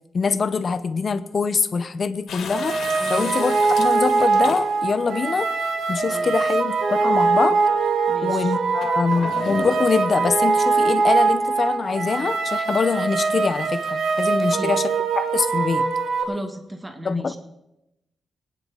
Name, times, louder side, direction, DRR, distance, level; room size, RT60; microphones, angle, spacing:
voice 1, 0.1-2.8 3.1-5.5 5.9-7.6 8.2-14.8 15.2-15.9 17.0-17.4, left 5 dB, 40° left, 11 dB, 0.8 m, -24 dB
sound 1, 2.3-5.0 5.9-6.0 8.8-10.4, left 6 dB, 85° left, 1.9 m, -35 dB
sound 2, 2.5-16.2, right 4 dB, 75° right, 1.5 m, -22 dB
voice 2, 3.0-3.3 6.1-6.6 8.1-8.5 14.4-14.7 16.2-17.4, right 1 dB, 15° right, 6 dB, 1.5 m, -35 dB
22.0 x 9.2 x 3.9 m, 0.89 s
wide cardioid pair, 125°, 0 cm